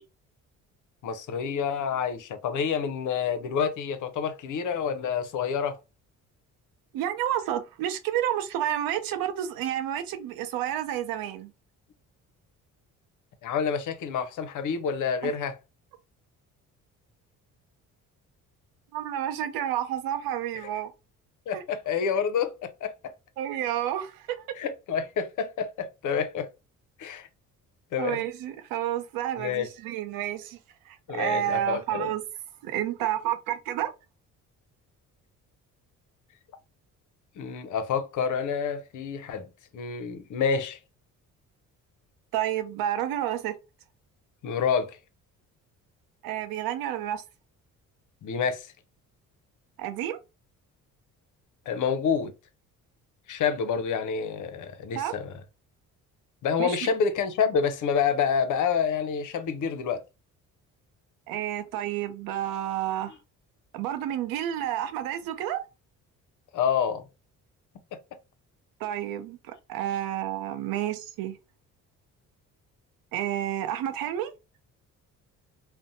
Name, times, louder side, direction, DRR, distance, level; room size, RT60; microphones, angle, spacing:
voice 1, 1.0-5.8 13.4-15.6 21.5-22.9 24.6-26.5 27.0-27.3 27.9-28.2 29.4-29.7 31.1-32.1 37.4-39.5 39.7-40.8 44.4-45.0 48.2-48.7 51.7-52.3 53.3-55.3 56.4-60.0 66.5-67.0 67.9-68.0, left 6 dB, 60° left, 0.6 m, -28 dB
voice 2, 6.9-11.5 15.2-15.3 18.9-20.9 21.5-21.6 23.4-24.5 28.0-30.6 30.9-32.2 32.6-33.9 42.3-43.6 46.2-47.2 49.8-50.2 54.9-55.1 56.6-56.8 61.3-63.2 63.7-65.6 68.8-71.4 73.1-74.3, right 11 dB, 80° right, 0.6 m, -30 dB
2.5 x 2.1 x 2.6 m
supercardioid pair, 75°, 34 cm